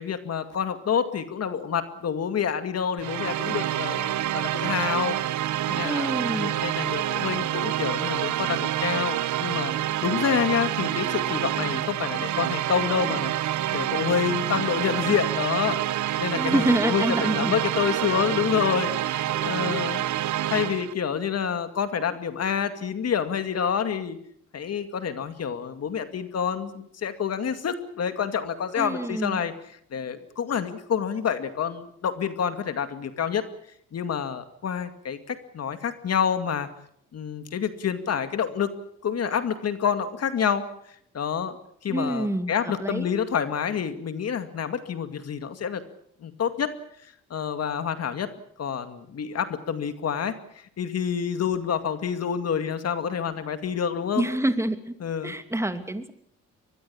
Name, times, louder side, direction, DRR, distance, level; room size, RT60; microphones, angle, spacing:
voice 1, 0.0-5.2 5.7-9.7 10.0-15.8 16.2-20.0 20.5-24.2 24.5-29.5 29.9-33.4 33.9-36.7 37.1-38.7 39.0-40.7 41.1-41.6 41.8-45.8 46.2-46.7 47.3-48.3 48.6-50.4 50.8-54.3 55.0-55.3, left 7 dB, 55° left, 9 dB, 2.3 m, -28 dB
sound 1, 3.0-20.9, right 13 dB, 70° right, 1.0 m, -27 dB
voice 2, 5.8-6.5 16.3-17.6 19.3-19.4 19.7-19.8 28.7-29.4 41.9-43.1 54.2-54.9 55.2-56.1, right 1 dB, 10° right, 8 dB, 2.7 m, -27 dB
24.0 x 21.0 x 7.2 m, 0.68 s
cardioid pair, 90°, 30 cm